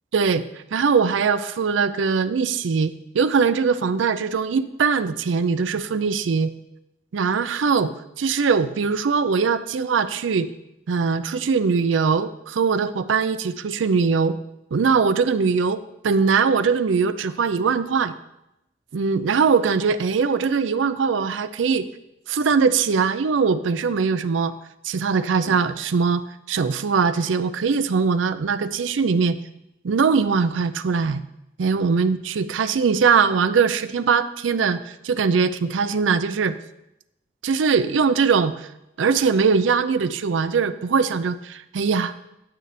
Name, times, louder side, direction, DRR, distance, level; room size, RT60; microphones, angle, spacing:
voice 1, 0.1-0.4 0.7-6.5 7.1-10.5 10.9-14.4 14.7-18.1 18.9-21.9 22.3-24.5 24.8-26.2 26.5-29.4 29.8-31.2 31.6-36.5 37.4-38.7 39.0-42.1, right 5 dB, 90° right, 13 dB, 0.4 m, -21 dB
8.8 x 8.1 x 3.3 m, 0.88 s
head